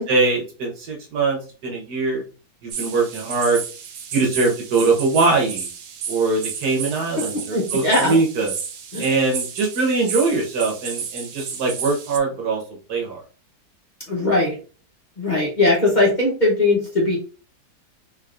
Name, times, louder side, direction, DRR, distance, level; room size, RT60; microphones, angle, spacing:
voice 1, 0.1-2.2 2.6-3.6 4.1-5.7 6.1-8.5 9.0-12.6 12.9-13.2, right 3 dB, 70° right, -1 dB, 1.7 m, -22 dB
sound 1, 2.7-12.2, right 7 dB, 90° right, 1.3 m, -32 dB
voice 2, 7.5-8.2 8.9-9.1 14.1-14.6 15.2-17.2, left 2 dB, 35° left, -4 dB, 0.9 m, -19 dB
3.7 x 3.6 x 2.5 m, 0.36 s
omnidirectional pair, 1.8 m